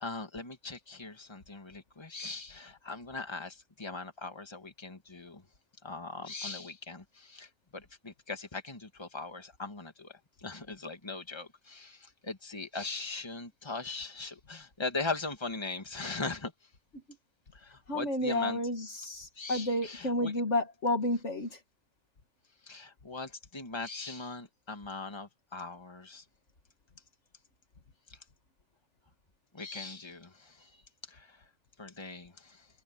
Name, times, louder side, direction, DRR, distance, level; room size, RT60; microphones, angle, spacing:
voice 1, 0.0-5.4 5.8-10.1 10.4-16.5 17.5-18.6 19.4-20.3 22.6-26.2 28.1-28.2 29.5-30.8 31.1-31.4 31.8-32.7, left 3 dB, 20° left, 2.1 m, -40 dB
voice 2, 17.9-21.6, left 1 dB, 55° left, 2.1 m, -31 dB
omnidirectional pair, 1.4 m